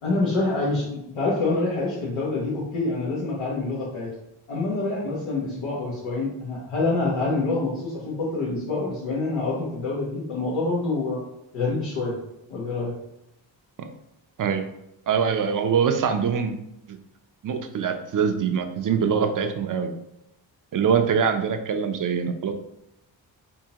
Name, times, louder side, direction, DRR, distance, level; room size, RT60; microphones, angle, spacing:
voice 1, 0.0-4.1 4.5-11.2 11.5-12.2 12.5-12.9, left 3 dB, 85° left, -7 dB, 1.1 m, -26 dB
voice 2, 15.1-16.6 16.9-17.0 17.4-19.9 20.7-22.5, right 6 dB, 45° right, 7 dB, 0.6 m, -23 dB
3.6 x 2.7 x 2.9 m, 0.81 s
cardioid pair, 55°, 48 cm